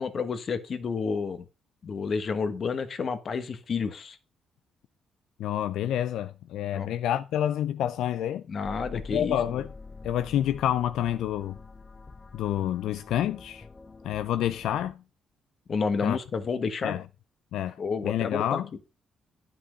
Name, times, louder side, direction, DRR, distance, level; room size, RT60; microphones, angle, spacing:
voice 1, 0.0-1.4 1.8-4.2 6.7-6.9 8.5-9.4 15.7-17.0 17.8-18.6, left 5 dB, 50° left, 1.2 m, -30 dB
voice 2, 5.4-8.4 8.9-9.7 10.0-11.6 12.3-13.7 14.0-15.0 16.0-16.2 16.8-17.0 17.5-18.7, left 11 dB, 80° left, 0.4 m, -28 dB
sound 1, 8.6-14.9, left 3 dB, 25° left, 0.6 m, -45 dB
10.0 x 5.6 x 5.1 m
cardioid pair, 90°, 0 cm